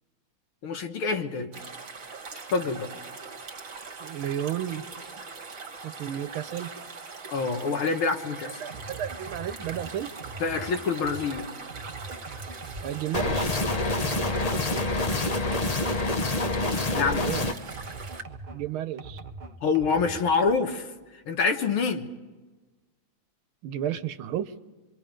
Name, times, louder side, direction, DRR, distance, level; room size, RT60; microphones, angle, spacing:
voice 1, 0.6-1.5 2.5-2.9 7.3-8.7 10.4-11.5 16.9-17.3 19.6-20.9 21.3-22.1, left 4 dB, 85° left, 6 dB, 2.2 m, -26 dB
sound 1, 1.5-18.2, right 4 dB, 40° right, 1.8 m, -42 dB
voice 2, 4.0-4.8 5.8-6.7 8.6-10.1 12.8-13.5 17.2-17.5 18.5-19.2 23.6-24.5, right 11 dB, 80° right, 12 dB, 1.7 m, -32 dB
sound 2, 8.7-18.6 19.0-20.8, right 3 dB, 65° right, 0.4 m, -42 dB
sound 3, 13.1-17.5, left 2 dB, 35° left, 0.6 m, -27 dB
27.0 x 24.0 x 5.1 m, 1.2 s
omnidirectional pair, 2.3 m